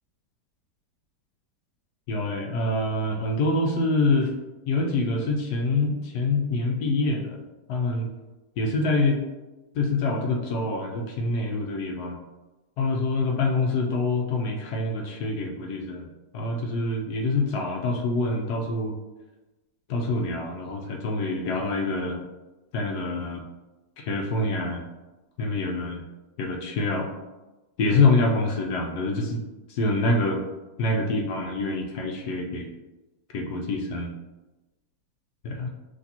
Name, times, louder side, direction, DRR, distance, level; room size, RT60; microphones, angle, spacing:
voice 1, 2.1-4.3 4.7-7.4 7.7-8.1 8.6-9.2 9.7-12.2 12.8-16.1 16.3-19.0 19.9-22.2 22.7-23.4 24.0-24.8 25.4-26.0 26.4-27.1 27.8-29.4 29.7-30.4 30.8-32.7 33.3-34.1 35.4-35.7, left 2 dB, 75° left, 2 dB, 1.1 m, -26 dB
6.0 x 3.0 x 2.8 m, 1.1 s
omnidirectional pair, 1.8 m